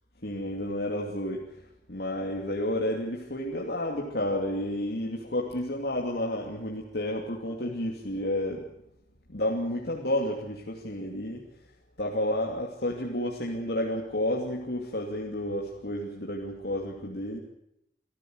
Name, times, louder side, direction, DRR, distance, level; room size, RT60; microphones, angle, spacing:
voice 1, 0.2-1.6 1.9-8.7 9.3-11.4 12.0-17.4, left 1 dB, 65° left, -1 dB, 2.8 m, -31 dB
26.5 x 14.5 x 8.0 m, 0.80 s
head